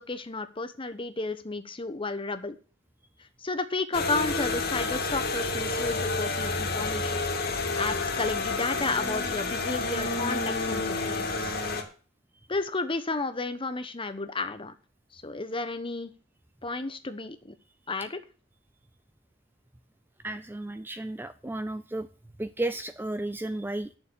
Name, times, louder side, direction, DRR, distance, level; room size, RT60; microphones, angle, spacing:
voice 1, 0.0-2.6 3.4-7.2 7.7-11.5 12.5-14.7 15.1-16.1 16.6-17.5 17.9-18.2, left 3 dB, 25° left, 10 dB, 1.0 m, -32 dB
sound 1, 3.9-11.8, left 3 dB, 50° left, 2.3 m, -29 dB
voice 2, 20.2-22.1 22.4-24.0, right 2 dB, 10° right, 12 dB, 0.4 m, -33 dB
9.2 x 6.9 x 8.3 m, 0.38 s
head